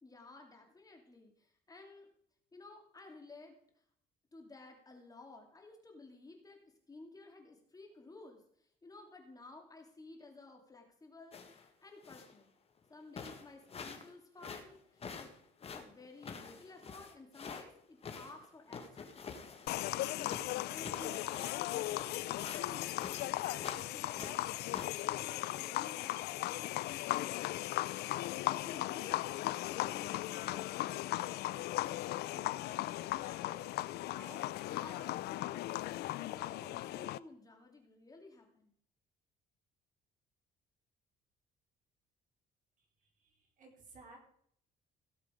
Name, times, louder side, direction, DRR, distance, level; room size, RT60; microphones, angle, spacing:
voice 1, 0.0-2.1 2.5-3.6 4.3-12.5 12.9-15.3 15.7-19.4 19.9-21.7 22.2-24.5 25.0-27.4 28.1-29.4 29.6-31.7 32.3-33.6 34.0-38.7, left 3 dB, 20° left, 3 dB, 2.6 m, -55 dB
sound 1, 11.3-11.7 12.0-12.4 12.8-12.9 13.1-14.1 14.4-17.6 18.0-20.0 20.3-23.3 23.6-23.8 24.1-24.9, left 5 dB, 35° left, 1.9 m, -47 dB
sound 2, 19.7-37.2, left 16 dB, 70° left, 0.5 m, -37 dB
voice 2, 43.0-44.2, right 3 dB, 50° right, 0 dB, 4.6 m, -57 dB
16.5 x 7.4 x 5.1 m, 0.64 s
cardioid pair, 110°, 17 cm